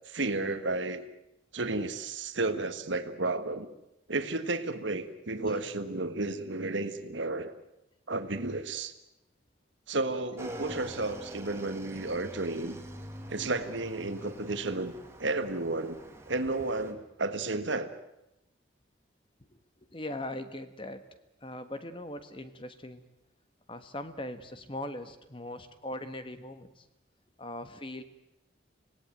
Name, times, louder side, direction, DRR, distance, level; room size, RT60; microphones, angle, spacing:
voice 1, 0.1-1.0 1.5-3.7 4.1-7.5 8.1-8.9 9.9-12.8 13.3-14.9 15.2-16.0 16.3-17.9, right 2 dB, 75° right, 10 dB, 1.7 m, -32 dB
Motorcycle / Engine, 10.4-16.9, right 1 dB, 15° right, 2.2 m, -45 dB
voice 2, 19.8-21.0 21.4-23.0 23.7-26.8 27.4-28.0, left 1 dB, 25° left, 10 dB, 1.4 m, -40 dB
26.0 x 18.5 x 9.1 m, 0.90 s
head